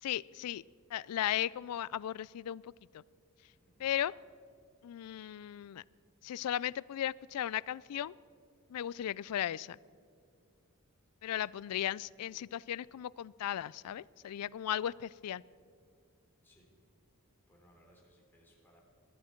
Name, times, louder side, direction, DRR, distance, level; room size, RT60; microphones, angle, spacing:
voice 1, 0.0-0.6 0.9-2.6 2.9-3.0 3.8-4.1 4.8-5.8 6.2-8.1 8.7-9.8 11.2-15.4, left 11 dB, 90° left, 23 dB, 0.3 m, -36 dB
voice 2, 17.5-18.8, equal, 10° left, -2 dB, 3.2 m, -65 dB
21.0 x 12.5 x 4.5 m, 2.3 s
head